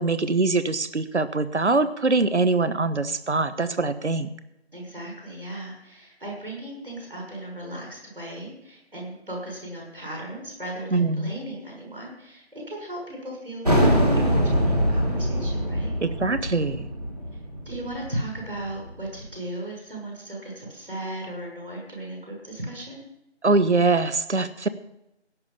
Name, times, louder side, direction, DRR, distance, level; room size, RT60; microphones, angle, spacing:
voice 1, 0.0-4.3 10.9-11.3 16.0-16.9 23.4-24.7, right 3 dB, 75° right, 13 dB, 1.0 m, -23 dB
voice 2, 4.7-15.9 17.6-23.0, right 1 dB, 50° right, -1 dB, 6.2 m, -36 dB
sound 1, 13.6-19.0, equal, 35° right, 2.3 m, -23 dB
16.5 x 8.7 x 5.6 m, 0.86 s
figure-of-eight pair, 180°, 35 cm